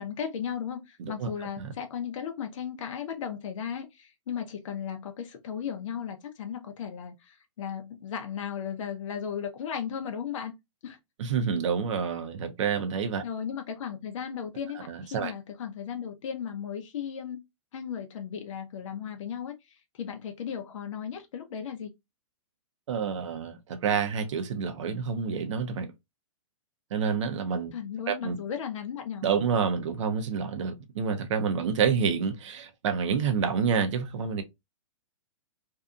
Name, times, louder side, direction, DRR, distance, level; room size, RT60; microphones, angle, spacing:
voice 1, 0.0-10.5 10.8-11.0 13.2-17.4 17.7-21.9 27.7-29.2, left 8 dB, 70° left, 0.6 m, -36 dB
voice 2, 1.0-1.3 1.6-1.7 11.2-13.2 14.9-15.3 22.9-25.9 26.9-27.7 28.1-28.4 29.2-34.4, right 6 dB, 65° right, 0.7 m, -28 dB
2.7 x 2.4 x 2.3 m
hypercardioid pair, 140°, 17 cm